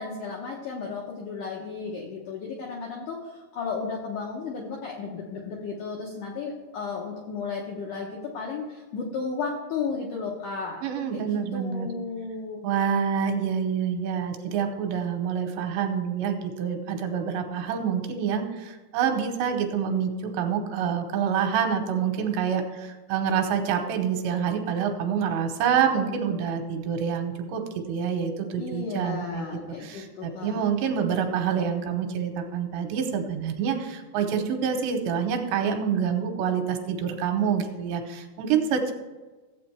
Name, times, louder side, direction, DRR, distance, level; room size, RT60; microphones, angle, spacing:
voice 1, 0.0-10.8 11.1-12.7 28.6-30.7, left 5 dB, 80° left, -1 dB, 1.8 m, -34 dB
voice 2, 10.8-11.9 12.6-29.5 29.8-38.9, right 7 dB, 80° right, 5 dB, 3.0 m, -27 dB
15.0 x 8.0 x 3.4 m, 1.3 s
omnidirectional pair, 5.1 m